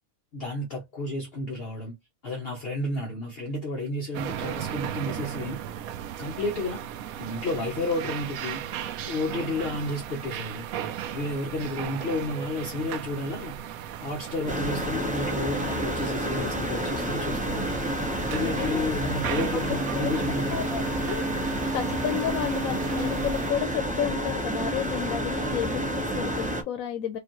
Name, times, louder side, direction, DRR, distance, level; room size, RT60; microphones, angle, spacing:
voice 1, 0.3-2.0 2.2-5.6 6.2-6.8 7.2-8.6 9.0-10.7 11.1-13.5 14.0-17.7 18.3-20.6, left 2 dB, 50° left, 1.0 m, -31 dB
sound 1, 4.1-23.5, right 10 dB, 85° right, 1.0 m, -36 dB
sound 2, 14.5-26.6, right 1 dB, 10° right, 0.6 m, -29 dB
voice 2, 18.4-18.9 19.5-19.6 19.9-20.1 20.5-21.2 21.7-27.2, left 9 dB, 85° left, 1.1 m, -31 dB
5.1 x 2.4 x 3.0 m
omnidirectional pair, 1.4 m